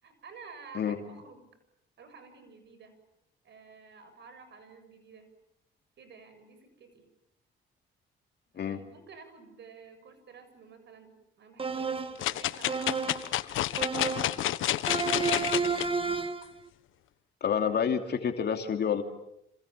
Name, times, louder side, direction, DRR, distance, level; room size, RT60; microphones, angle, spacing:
voice 1, 0.0-1.4 2.0-2.9 3.4-5.3 6.0-7.1 8.5-13.4 13.7-15.2, right 5 dB, 60° right, 10 dB, 7.3 m, -52 dB
sound 1, 11.6-12.3 12.7-13.3 13.8-14.4 14.9-16.5, right 4 dB, 25° right, 1.9 m, -31 dB
sound 2, 12.2-15.9 16.4-16.5, left 13 dB, 85° left, 1.2 m, -30 dB
voice 2, 17.4-19.0, left 7 dB, 55° left, 5 dB, 2.9 m, -28 dB
29.0 x 27.5 x 7.4 m, 0.81 s
cardioid pair, 90°, 20 cm